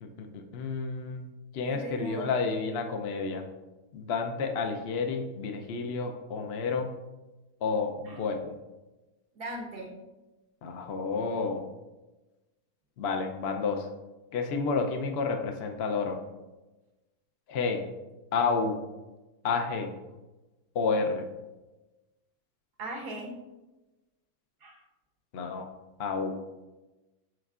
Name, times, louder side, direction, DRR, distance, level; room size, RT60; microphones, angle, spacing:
voice 1, 0.0-1.3 1.5-3.4 3.9-6.9 7.6-8.5 10.6-11.6 13.0-13.9 14.3-16.2 17.5-17.8 18.3-18.8 19.4-19.9 20.7-21.2 25.3-25.7 26.0-26.3, left 4 dB, 60° left, 4 dB, 0.7 m, -30 dB
voice 2, 1.7-2.3 8.1-8.2 9.3-10.0 22.8-23.4 24.6-24.8, right 1 dB, 80° right, 0 dB, 1.8 m, -38 dB
12.5 x 4.4 x 2.4 m, 1.1 s
omnidirectional pair, 1.7 m